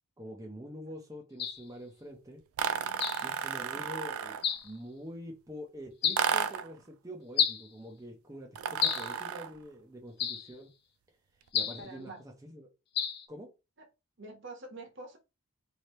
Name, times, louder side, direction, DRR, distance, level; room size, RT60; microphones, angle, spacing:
voice 1, 0.2-2.4 3.2-10.7 11.5-12.7 13.3-13.5, equal, 15° right, 0.6 m, -45 dB
sound 1, 1.4-1.6 3.0-3.3 4.4-4.7 6.0-6.3 7.4-7.7 8.8-9.1 10.2-10.5 11.5-11.9 13.0-13.2, left 8 dB, 50° left, 0.5 m, -30 dB
sound 2, 2.6-4.5 6.2-6.8 8.6-9.6, right 7 dB, 80° right, 0.4 m, -33 dB
voice 2, 11.8-12.2 13.8-13.9 14.2-15.2, right 2 dB, 55° right, 1.1 m, -46 dB
3.3 x 2.7 x 4.1 m
head